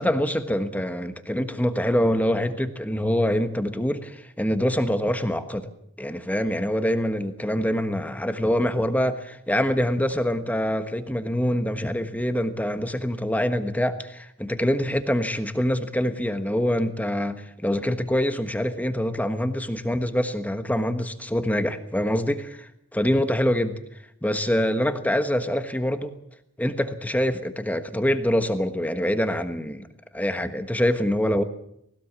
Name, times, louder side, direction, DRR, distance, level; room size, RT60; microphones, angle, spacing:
voice 1, 0.0-5.7 6.0-22.7 22.9-23.8 24.2-26.1 26.6-29.9 30.1-31.4, equal, 10° left, 9 dB, 1.3 m, -25 dB
19.5 x 18.0 x 7.4 m, 0.75 s
head